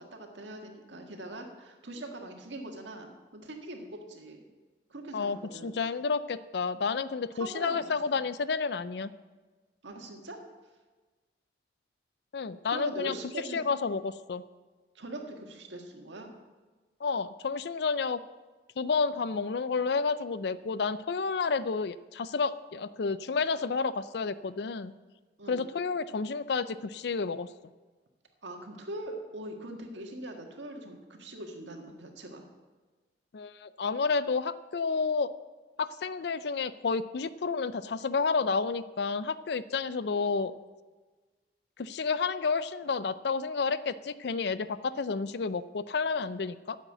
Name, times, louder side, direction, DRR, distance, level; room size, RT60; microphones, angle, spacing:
voice 1, 0.0-4.4 4.9-5.8 7.3-7.9 8.1-8.2 9.8-10.4 12.7-13.7 15.0-16.3 25.4-25.7 28.4-32.4, right 1 dB, 80° right, 3 dB, 1.7 m, -42 dB
voice 2, 5.6-9.1 12.3-13.2 13.5-14.4 17.0-18.2 18.8-24.9 25.5-27.5 33.3-35.3 35.8-40.5 41.8-46.8, left 4 dB, 65° left, 16 dB, 0.4 m, -30 dB
9.8 x 7.4 x 9.0 m, 1.3 s
head